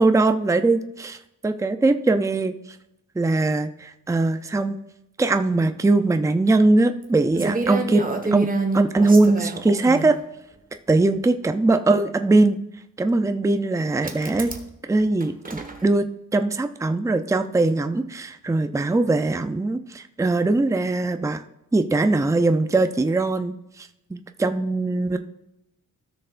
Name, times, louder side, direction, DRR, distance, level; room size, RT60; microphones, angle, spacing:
voice 1, 0.0-1.2 1.4-2.5 3.2-4.8 5.2-8.5 8.7-10.2 10.9-12.6 13.0-14.5 14.9-21.4 21.7-25.2, right 2 dB, 10° right, 8 dB, 0.5 m, -21 dB
sound 1, 7.0-7.1 7.3-10.1 11.2-11.3 14.0-14.7 15.0-15.8, right 3 dB, 25° right, 1.4 m, -27 dB
16.0 x 6.5 x 2.5 m, 0.85 s
wide cardioid pair, 110°, 34 cm